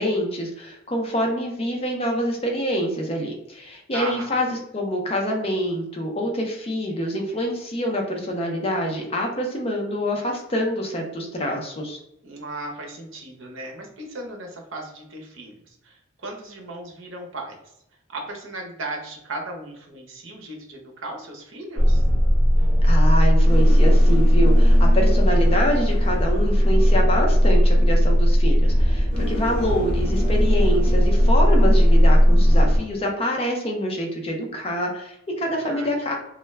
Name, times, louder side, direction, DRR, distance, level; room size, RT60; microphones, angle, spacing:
voice 1, 0.0-4.5 4.7-12.0 22.8-36.2, equal, 30° left, 1 dB, 0.5 m, -26 dB
voice 2, 3.9-4.3 12.2-17.6 18.1-22.0 24.9-25.6 35.4-35.9, right 2 dB, 70° right, 1 dB, 0.7 m, -36 dB
sound 1, 21.8-32.8, equal, 35° right, 0.9 m, -17 dB
2.2 x 2.1 x 3.2 m, 0.81 s
head